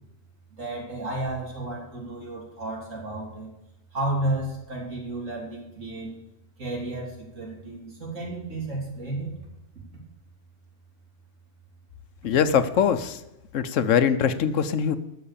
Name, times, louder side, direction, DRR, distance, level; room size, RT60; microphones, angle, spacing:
voice 1, 0.5-3.5 3.9-6.2 6.6-9.3, right 2 dB, 85° right, -2 dB, 3.4 m, -32 dB
voice 2, 12.2-13.2 13.5-15.0, left 7 dB, 80° left, 11 dB, 1.1 m, -22 dB
12.5 x 6.3 x 6.8 m, 0.92 s
omnidirectional pair, 1.3 m